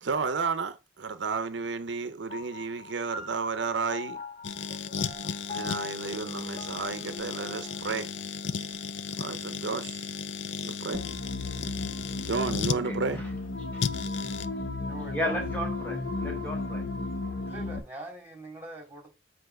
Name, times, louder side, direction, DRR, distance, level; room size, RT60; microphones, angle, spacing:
voice 1, 0.0-4.2 5.5-8.1 9.2-10.1 10.6-11.0 12.3-13.2, right 4 dB, 75° right, 0.6 m, -32 dB
sound 1, 2.3-11.1, left 3 dB, 40° left, 1.6 m, -44 dB
sound 2, 4.4-12.8 13.8-14.5, left 6 dB, 80° left, 0.5 m, -35 dB
sound 3, 10.9-17.8, left 2 dB, 60° left, 1.4 m, -34 dB
voice 2, 12.8-13.3 13.7-13.9 15.1-16.9, equal, 10° left, 0.8 m, -34 dB
voice 3, 14.8-15.4 17.4-19.1, right 1 dB, 10° right, 2.8 m, -43 dB
7.8 x 2.8 x 5.8 m
head